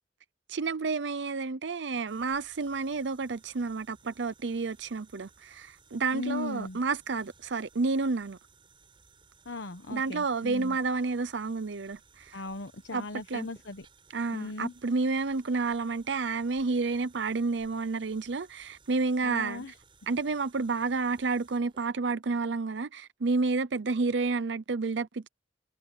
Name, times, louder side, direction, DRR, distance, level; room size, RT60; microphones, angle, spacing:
voice 1, 0.5-8.4 9.9-12.4 12.9-13.0 13.3-13.5 14.1-19.6 20.1-25.3, right 4 dB, 75° right, 0.7 m, -30 dB
sound 1, 2.1-21.9, right 4 dB, 30° right, 6.6 m, -60 dB
voice 2, 6.1-6.8 9.4-10.8 12.3-13.8 14.3-14.7 19.2-19.7, left 3 dB, 90° left, 1.2 m, -38 dB
head